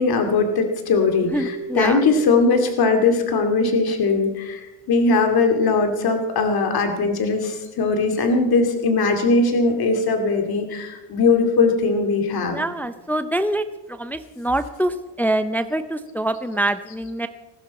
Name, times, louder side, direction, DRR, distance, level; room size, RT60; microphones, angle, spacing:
voice 1, 0.0-12.6, left 3 dB, 55° left, 5 dB, 2.5 m, -20 dB
Keyboard (musical), 1.2-4.5, right 3 dB, 20° right, 7.7 m, -39 dB
voice 2, 1.3-2.0 12.4-17.3, right 1 dB, 5° left, 10 dB, 0.5 m, -25 dB
19.5 x 15.0 x 4.2 m, 1.1 s
cardioid pair, 125°, 43 cm